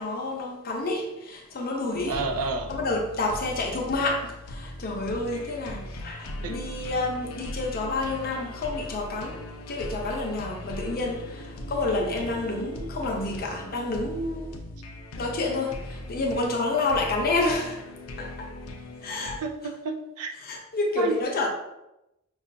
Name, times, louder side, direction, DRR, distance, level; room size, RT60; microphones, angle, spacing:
voice 1, 0.0-2.2 2.7-14.5 15.2-17.8 18.2-18.5 19.0-19.4 20.4-21.5, left 2 dB, 45° left, 0.6 m, -29 dB
sound 1, 1.9-19.4, left 1 dB, 85° left, 0.5 m, -39 dB
voice 2, 2.1-2.7 6.4-6.6 19.4-20.3 21.0-21.1, right 4 dB, 80° right, 0.5 m, -30 dB
5.3 x 2.4 x 2.5 m
head